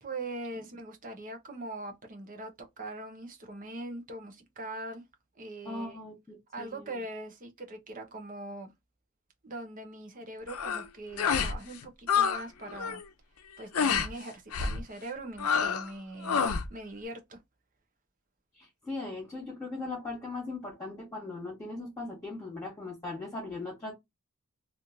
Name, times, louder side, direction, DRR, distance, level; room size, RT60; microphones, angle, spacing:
voice 1, 0.0-5.0 5.4-6.0 6.5-8.7 9.4-13.0 13.6-16.4 16.7-17.4, right 2 dB, 40° right, 0.9 m, -41 dB
voice 2, 5.6-7.0 18.6-23.9, left 2 dB, 15° left, 1.4 m, -39 dB
sound 1, 10.5-10.8 11.2-11.6 11.8-12.4 12.7-13.0 13.7-14.1 14.5-14.8 15.4-15.9 16.2-16.7, left 6 dB, 80° left, 0.6 m, -28 dB
3.2 x 2.6 x 2.6 m
head